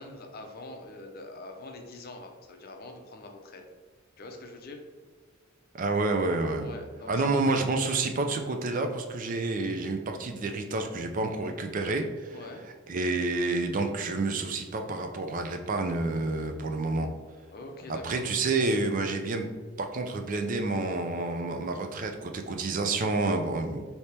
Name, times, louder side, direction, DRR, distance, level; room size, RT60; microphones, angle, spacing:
voice 1, 0.0-3.6 4.2-4.8 6.6-7.3 12.3-12.6 17.5-18.2, left 2 dB, 50° left, 3 dB, 0.5 m, -44 dB
voice 2, 5.7-6.8 7.1-12.4 12.9-17.1 17.9-19.5 19.8-23.9, right 3 dB, 40° right, 5 dB, 0.4 m, -29 dB
4.2 x 2.8 x 3.3 m, 1.4 s
head